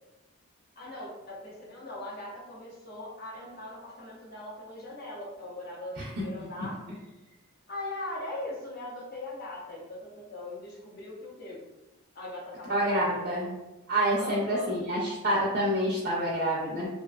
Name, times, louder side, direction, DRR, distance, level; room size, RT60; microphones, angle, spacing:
voice 1, 0.8-6.8 7.7-11.6 12.1-13.3 14.2-14.8, left 1 dB, 45° left, -5 dB, 0.7 m, -40 dB
voice 2, 12.7-13.5 13.9-16.9, right 1 dB, 45° right, -5 dB, 0.4 m, -27 dB
2.5 x 2.1 x 2.3 m, 1.0 s
head